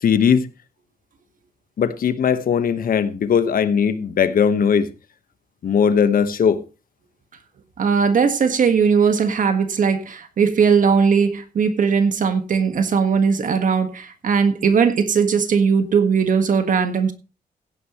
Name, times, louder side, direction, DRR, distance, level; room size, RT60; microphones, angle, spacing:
voice 1, 0.0-0.5 1.8-4.9 5.6-6.6, left 7 dB, 65° left, 1.2 m, -18 dB
voice 2, 7.8-17.1, right 6 dB, 60° right, 1.5 m, -18 dB
16.5 x 9.9 x 3.0 m
wide cardioid pair, 170°, 16 cm